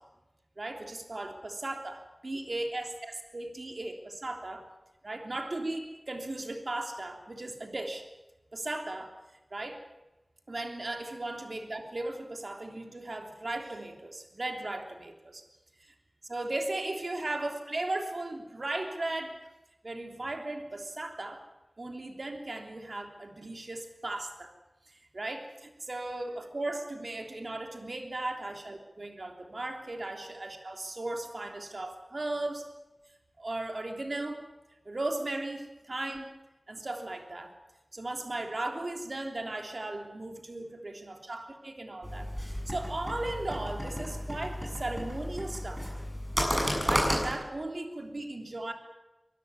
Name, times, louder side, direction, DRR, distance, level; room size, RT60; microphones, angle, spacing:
voice 1, 0.6-4.6 5.0-8.1 8.5-9.1 9.5-9.8 10.5-15.4 15.8-15.9 16.3-19.3 19.8-21.4 21.8-24.5 24.9-32.6 33.4-34.4 34.8-36.3 36.7-37.5 37.9-42.3 42.6-46.0 46.8-48.7, right 2 dB, 60° right, 4 dB, 3.3 m, -37 dB
sound 1, 42.0-47.3, equal, 5° right, 7.5 m, -32 dB
23.5 x 13.5 x 9.7 m, 1.0 s
wide cardioid pair, 50°, 0 cm